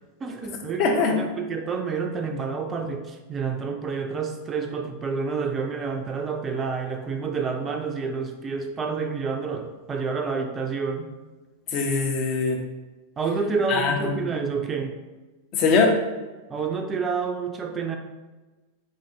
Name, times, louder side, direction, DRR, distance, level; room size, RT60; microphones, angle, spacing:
voice 1, 0.2-11.1 13.2-14.9 16.5-18.0, right 5 dB, 20° right, 4 dB, 0.4 m, -29 dB
voice 2, 0.8-1.2 11.7-12.6 13.7-14.2 15.5-16.0, left 4 dB, 35° left, 1 dB, 0.6 m, -22 dB
3.7 x 2.5 x 3.2 m, 1.2 s
figure-of-eight pair, 90°, 0 cm